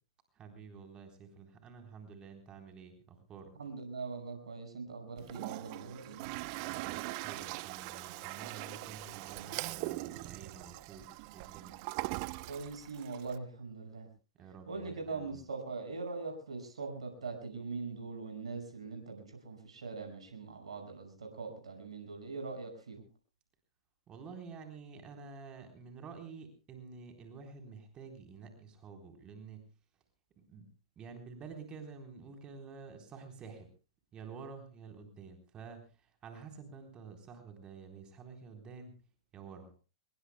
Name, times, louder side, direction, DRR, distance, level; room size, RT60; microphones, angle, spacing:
voice 1, 0.3-3.5 6.6-11.8 14.4-15.4 24.1-29.6 30.5-30.7 31.0-33.7 34.1-38.9 39.3-39.7, right 5 dB, 25° right, 5 dB, 3.9 m, -50 dB
voice 2, 3.6-6.2 12.5-14.1 14.7-23.1, right 4 dB, 85° right, 5 dB, 5.8 m, -42 dB
Toilet flush, 5.2-13.4, right 22 dB, 45° right, 0.7 m, -41 dB
25.0 x 21.5 x 2.2 m, 0.34 s
hypercardioid pair, 115°, 3 cm